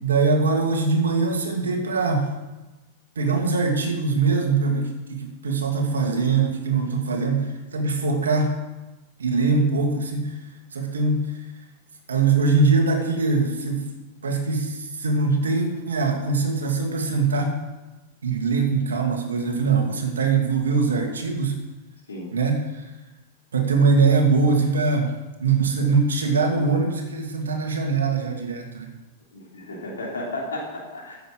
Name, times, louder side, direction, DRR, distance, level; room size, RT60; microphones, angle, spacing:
voice 1, 0.0-2.3 3.2-8.6 9.2-10.4 10.7-11.3 12.1-13.9 14.2-17.6 18.2-21.6 22.3-22.9 23.5-25.1 25.4-28.9, right 4 dB, 85° right, 3 dB, 2.3 m, -22 dB
voice 2, 29.3-31.2, left 1 dB, 85° left, -3 dB, 3.2 m, -33 dB
10.5 x 8.2 x 7.6 m, 1.1 s
hypercardioid pair, 100°, 0 cm